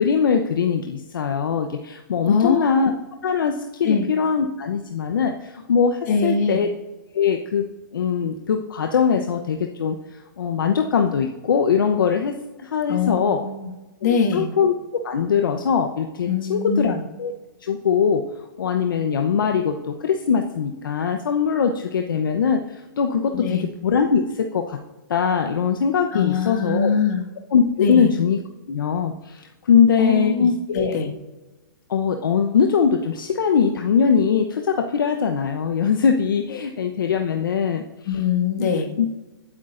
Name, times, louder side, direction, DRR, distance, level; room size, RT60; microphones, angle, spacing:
voice 1, 0.0-2.9 3.2-6.7 7.1-7.7 7.9-13.4 14.0-14.7 15.0-17.3 17.6-18.2 18.6-24.8 25.1-26.9 27.5-28.4 28.7-30.9 31.9-37.8 38.6-38.7 39.0-39.1, left 6 dB, 75° left, 4 dB, 0.9 m, -21 dB
voice 2, 2.3-2.8 3.8-4.1 6.1-6.6 12.9-13.7 14.0-14.5 16.3-17.0 23.3-23.6 26.1-27.3 27.8-28.1 30.0-31.1 36.5-36.6 38.1-38.9, left 5 dB, 55° left, 2 dB, 1.9 m, -22 dB
23.0 x 8.5 x 2.6 m, 1.1 s
hypercardioid pair, 135°, 11 cm